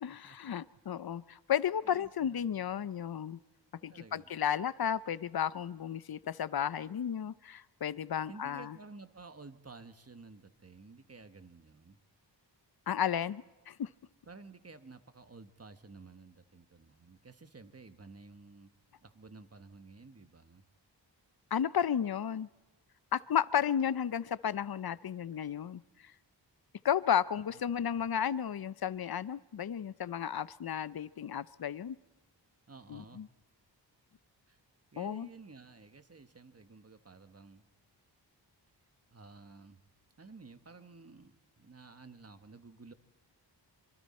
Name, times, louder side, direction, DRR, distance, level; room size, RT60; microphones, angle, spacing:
voice 1, 0.0-3.4 3.8-8.8 12.9-13.9 21.5-22.5 23.1-25.8 26.8-32.0 32.9-33.3 35.0-35.3, left 9 dB, 55° left, 17 dB, 0.6 m, -33 dB
voice 2, 1.8-2.7 3.8-4.3 8.3-12.0 14.3-18.7 19.0-20.6 27.5-27.6 27.9-28.0 32.7-33.2 34.5-34.6 34.9-37.6 39.1-39.8 40.2-42.9, right 4 dB, 35° right, 10 dB, 1.3 m, -53 dB
25.5 x 24.0 x 4.3 m, 1.2 s
wide cardioid pair, 75°, 44 cm